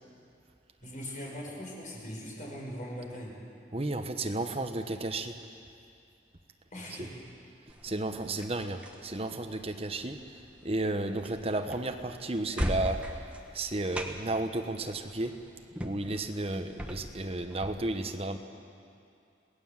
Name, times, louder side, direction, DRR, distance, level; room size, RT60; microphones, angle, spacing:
voice 1, 0.8-3.4 6.7-7.1, equal, 45° left, -3 dB, 5.9 m, -40 dB
voice 2, 3.7-5.4 7.0-7.1 7.8-13.3 13.5-15.4 15.8-18.4, right 2 dB, 35° right, 6 dB, 1.2 m, -33 dB
sound 1, 7.7-17.7, equal, 5° right, 1.4 m, -40 dB
27.0 x 18.0 x 7.4 m, 2.5 s
head